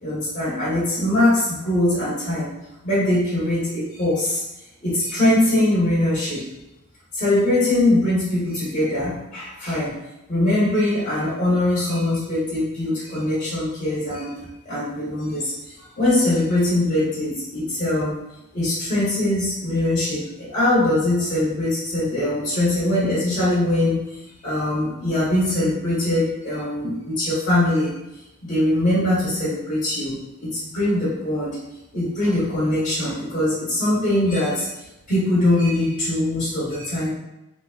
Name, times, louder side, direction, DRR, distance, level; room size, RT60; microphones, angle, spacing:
voice 1, 0.0-2.5 2.8-4.4 4.8-6.4 7.1-9.9 10.3-18.2 18.5-27.9 28.5-31.6 31.9-34.7 35.1-37.1, left 1 dB, 35° left, -11 dB, 1.3 m, -22 dB
3.6 x 2.3 x 2.5 m, 0.93 s
head